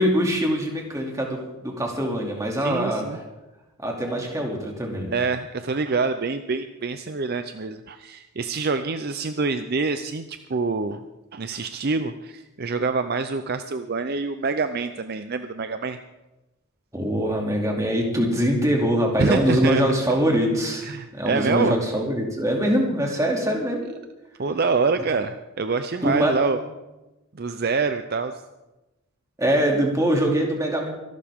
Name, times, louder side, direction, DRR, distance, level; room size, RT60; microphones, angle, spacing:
voice 1, 0.0-3.0 3.8-5.1 16.9-23.9 26.0-26.4 29.4-30.9, equal, 15° right, 0 dB, 2.6 m, -23 dB
voice 2, 2.6-3.2 5.1-11.0 11.3-16.0 19.2-19.8 20.9-21.8 24.4-26.6 27.3-28.3, right 4 dB, 50° right, 9 dB, 0.6 m, -26 dB
25.0 x 12.0 x 3.6 m, 1.0 s
head